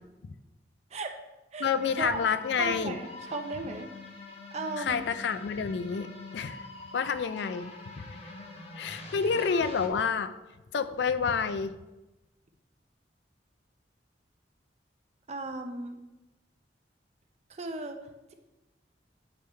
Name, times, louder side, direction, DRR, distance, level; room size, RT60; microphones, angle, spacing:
voice 1, 1.6-2.9 4.8-6.7 6.9-8.2 8.8-10.3 10.7-11.8, left 6 dB, 70° left, 12 dB, 0.4 m, -29 dB
sound 1, 1.7-9.9, left 3 dB, 35° left, 0.7 m, -45 dB
voice 2, 2.6-3.9 4.5-5.0 15.3-16.0 17.5-18.0, right 2 dB, 35° right, 6 dB, 0.6 m, -35 dB
8.0 x 3.5 x 4.3 m, 1.0 s
head